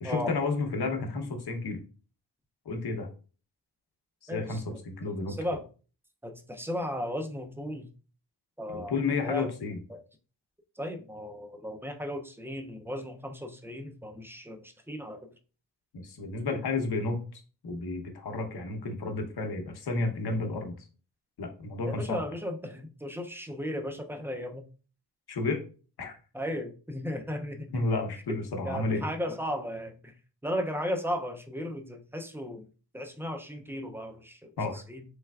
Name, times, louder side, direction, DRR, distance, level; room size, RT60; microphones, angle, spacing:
voice 1, 0.0-1.8 2.7-3.1 4.2-5.3 8.7-9.8 16.0-20.7 21.4-22.2 25.3-25.6 26.0-26.2 27.7-29.0 34.6-34.8, left 3 dB, 60° left, 3 dB, 0.8 m, -31 dB
voice 2, 4.3-4.8 5.3-5.6 6.2-7.9 8.6-9.5 9.9-10.0 10.8-15.3 21.8-24.6 26.3-27.8 28.3-28.4 28.6-30.1 30.4-32.6 32.9-35.0, equal, 5° right, 4 dB, 0.3 m, -35 dB
3.3 x 3.2 x 2.2 m, 0.37 s
wide cardioid pair, 130°, 43 cm